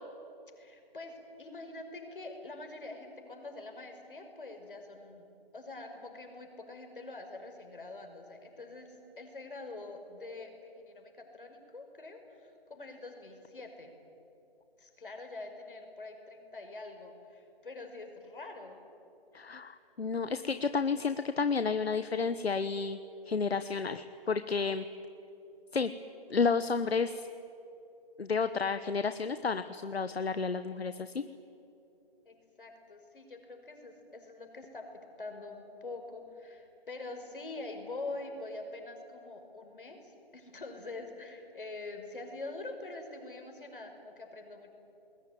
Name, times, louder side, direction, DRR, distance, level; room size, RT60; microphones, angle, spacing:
voice 1, 0.6-5.3 5.5-13.9 14.8-18.8 32.2-34.8 35.2-44.7, left 2 dB, 60° left, 5 dB, 5.6 m, -45 dB
voice 2, 19.3-23.0 23.3-24.9 25.7-25.9 26.3-27.3 28.2-31.2, left 5 dB, 80° left, 11 dB, 1.2 m, -31 dB
29.5 x 21.0 x 9.4 m, 2.9 s
hypercardioid pair, 175°, 31 cm